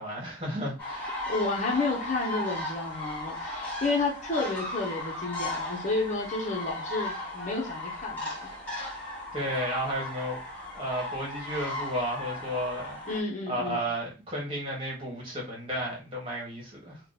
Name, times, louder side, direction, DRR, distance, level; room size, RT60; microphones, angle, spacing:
voice 1, 0.0-1.1 9.3-10.4 10.8-13.0 13.5-17.0, equal, 30° right, 1.5 m, -33 dB
sound 1, 0.8-13.2, left 2 dB, 5° left, 1.2 m, -36 dB
voice 2, 1.3-8.5 13.1-13.8, left 3 dB, 40° left, 0.7 m, -31 dB
2.9 x 2.2 x 3.9 m
head